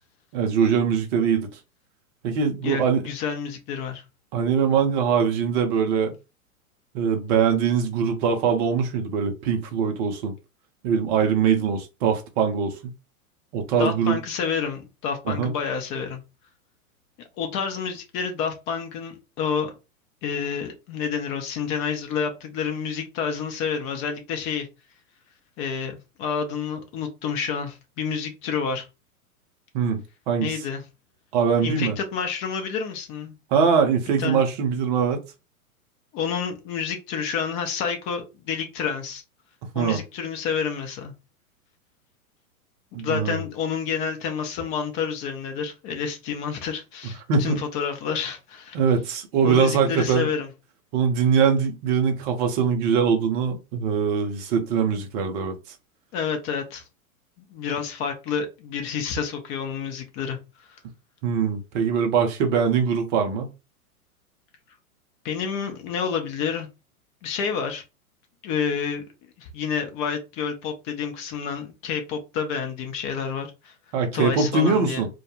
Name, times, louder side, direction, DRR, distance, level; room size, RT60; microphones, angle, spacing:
voice 1, 0.3-1.5 2.2-3.0 4.3-6.1 6.9-10.3 10.8-12.8 13.5-14.2 15.3-15.5 29.7-30.6 31.3-31.9 33.5-35.2 39.7-40.0 42.9-43.4 47.3-47.6 48.7-50.3 50.9-55.6 61.2-63.5 73.9-75.1, right 6 dB, 35° right, 0.6 m, -22 dB
voice 2, 2.6-4.0 13.8-16.2 17.4-19.7 20.2-24.7 25.6-28.9 30.4-30.8 31.6-33.3 34.2-34.4 36.1-39.2 39.7-41.1 42.9-48.8 49.4-50.5 56.1-56.8 57.4-60.4 65.2-66.7 67.2-67.8 68.4-69.0 69.4-73.7 74.1-75.0, left 6 dB, 30° left, 0.6 m, -29 dB
2.2 x 2.2 x 2.9 m
figure-of-eight pair, 105°, 45 cm